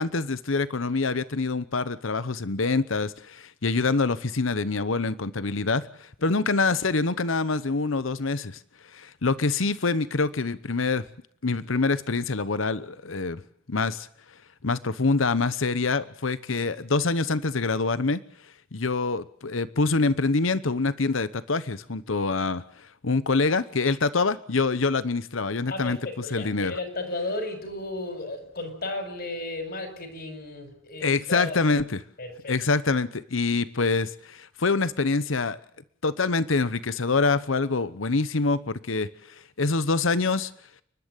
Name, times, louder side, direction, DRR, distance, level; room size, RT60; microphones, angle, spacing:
voice 1, 0.0-8.6 8.9-11.0 11.4-13.4 13.7-14.1 14.6-18.2 18.7-26.0 26.3-26.8 31.0-32.0 32.5-35.6 36.0-40.5, left 3 dB, 75° left, 15 dB, 1.0 m, -25 dB
voice 2, 25.7-31.6 32.2-32.5, left 2 dB, 55° left, 6 dB, 5.3 m, -34 dB
30.0 x 12.0 x 9.1 m, 0.64 s
head